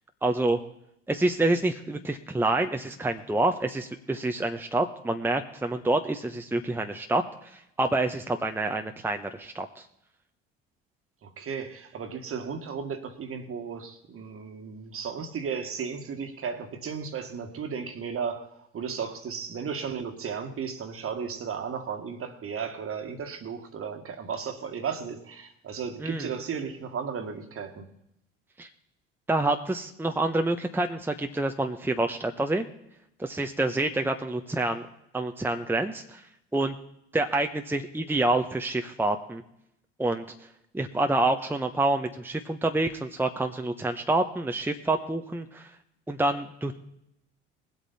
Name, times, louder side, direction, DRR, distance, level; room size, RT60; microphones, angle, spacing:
voice 1, 0.2-0.6 1.1-9.8 26.0-26.3 28.6-28.7 29.3-32.6 33.2-34.9 35.1-36.2 36.5-36.7 37.1-39.4 40.0-40.2 40.7-45.7 46.1-46.8, right 2 dB, 5° right, 5 dB, 1.0 m, -27 dB
voice 2, 11.2-18.5 18.7-27.9, right 6 dB, 45° right, 7 dB, 1.9 m, -35 dB
20.0 x 8.2 x 4.3 m, 0.79 s
hypercardioid pair, 65°, 32 cm